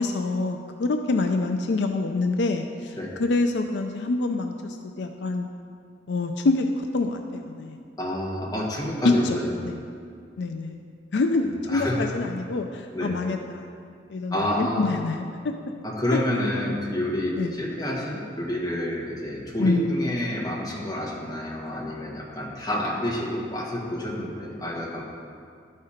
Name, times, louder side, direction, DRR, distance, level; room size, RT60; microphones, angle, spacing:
voice 1, 0.0-5.5 6.1-7.8 9.0-9.8 10.4-10.8 11.1-13.7 14.1-15.5 16.1-16.2 17.4-17.6 19.6-20.0, left 3 dB, 75° left, 5 dB, 0.4 m, -26 dB
voice 2, 8.0-9.2 11.7-12.1 12.9-13.1 14.3-15.0 15.8-25.0, left 1 dB, 20° left, -5 dB, 1.5 m, -28 dB
11.5 x 4.3 x 5.0 m, 2.3 s
head